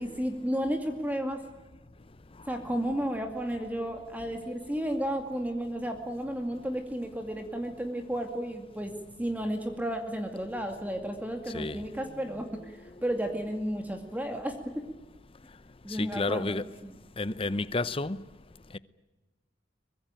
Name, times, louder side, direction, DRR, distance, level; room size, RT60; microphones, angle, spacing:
voice 1, 0.0-1.4 2.5-8.9 9.2-14.7 15.8-16.6 16.8-17.0, equal, 10° right, 2.2 m, -33 dB
voice 2, 15.9-16.7 17.2-18.2, left 3 dB, 30° left, 0.8 m, -30 dB
24.0 x 21.5 x 8.9 m
head